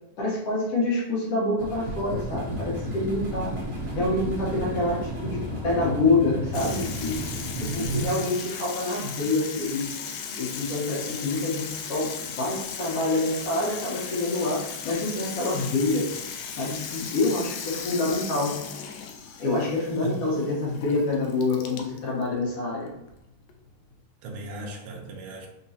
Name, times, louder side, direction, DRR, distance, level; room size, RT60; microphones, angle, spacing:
voice 1, 0.2-3.5 3.9-7.2 7.6-9.9 10.4-16.1 16.5-18.6 19.4-22.9, left 2 dB, 65° left, -5 dB, 1.7 m, -26 dB
sound 1, 1.6-8.1, equal, 40° right, 1.1 m, -33 dB
Water tap faucet / Sink (filling or washing), 6.5-24.0, left 6 dB, 90° left, 1.4 m, -37 dB
voice 2, 7.5-8.1 20.0-20.2 24.2-25.5, right 5 dB, 75° right, 1 dB, 1.4 m, -34 dB
4.7 x 3.0 x 2.7 m, 0.82 s
omnidirectional pair, 3.5 m